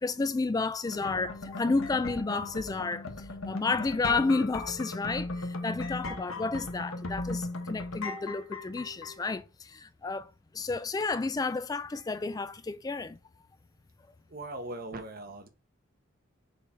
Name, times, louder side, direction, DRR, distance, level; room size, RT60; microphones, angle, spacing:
voice 1, 0.0-13.2, left 3 dB, 20° left, 0.3 m, -31 dB
sound 1, 0.8-9.3, left 2 dB, 90° left, 1.4 m, -38 dB
voice 2, 14.3-15.5, right 2 dB, 45° right, 1.4 m, -39 dB
6.8 x 4.1 x 4.5 m
head